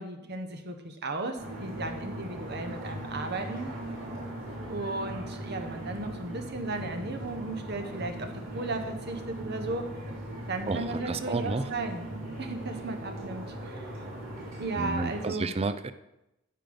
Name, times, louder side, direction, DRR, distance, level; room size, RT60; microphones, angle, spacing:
voice 1, 0.0-3.7 4.7-9.9 10.5-12.0 12.4-14.1 14.6-15.5, right 2 dB, 50° right, 6 dB, 1.1 m, -35 dB
sound 1, 1.4-15.2, right 1 dB, 65° right, 3.7 m, -39 dB
voice 2, 10.7-11.7 14.8-15.9, right 3 dB, 30° right, 13 dB, 0.5 m, -31 dB
9.0 x 7.9 x 5.2 m, 0.91 s
head